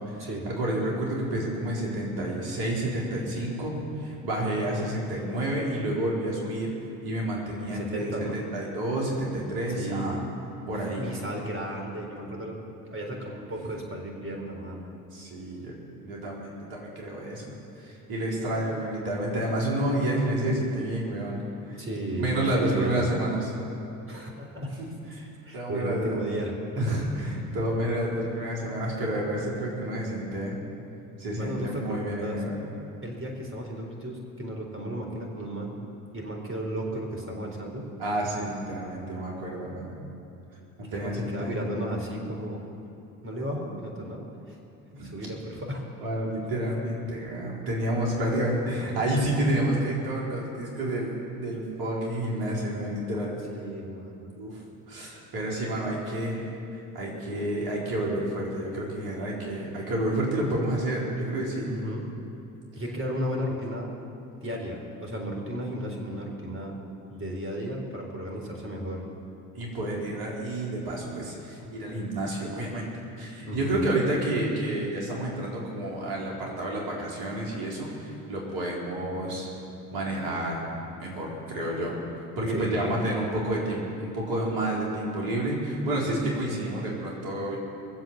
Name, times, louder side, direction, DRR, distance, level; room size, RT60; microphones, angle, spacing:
voice 1, 0.0-6.7 7.0-10.2 10.7-11.0 15.1-15.8 16.0-21.4 21.7-21.8 22.1-23.5 24.8-24.9 25.1-25.3 25.5-26.2 26.8-30.6 31.2-32.6 38.0-40.0 40.8-41.6 45.0-45.1 46.0-53.5 54.4-54.6 54.9-56.5 56.9-61.7 69.5-72.9 73.2-79.5 79.9-80.6 81.0-81.9 82.4-87.6, right 1 dB, 55° right, -3 dB, 4.4 m, -29 dB
voice 2, 7.7-8.4 9.8-10.2 11.0-14.9 21.8-23.1 24.1-24.7 25.4-26.5 31.4-32.4 33.0-35.8 36.1-37.9 40.9-42.6 43.2-44.2 44.5-44.6 45.0-45.9 53.5-54.3 61.7-62.1 62.7-63.9 64.4-66.7 67.1-69.0 73.4-73.9 82.5-82.9, equal, 30° right, 1 dB, 4.0 m, -34 dB
21.5 x 7.9 x 7.4 m, 2.8 s
hypercardioid pair, 60°, 43 cm